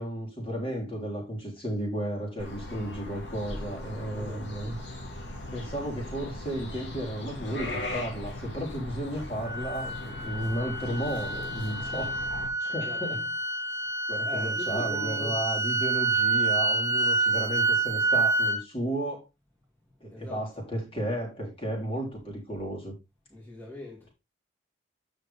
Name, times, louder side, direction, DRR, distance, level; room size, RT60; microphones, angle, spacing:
voice 1, 0.0-4.8 5.5-12.2 12.6-13.2 14.1-19.2 20.0-22.9, right 1 dB, 30° left, 3.6 m, -33 dB
sound 1, 2.4-12.5, left 1 dB, 65° left, 3.3 m, -39 dB
voice 2, 4.1-4.4 12.7-13.2 14.2-15.4 20.1-20.4 23.3-24.1, left 2 dB, 10° left, 2.6 m, -41 dB
sound 2, 9.4-18.6, right 3 dB, 15° right, 0.8 m, -28 dB
9.7 x 6.6 x 3.5 m
head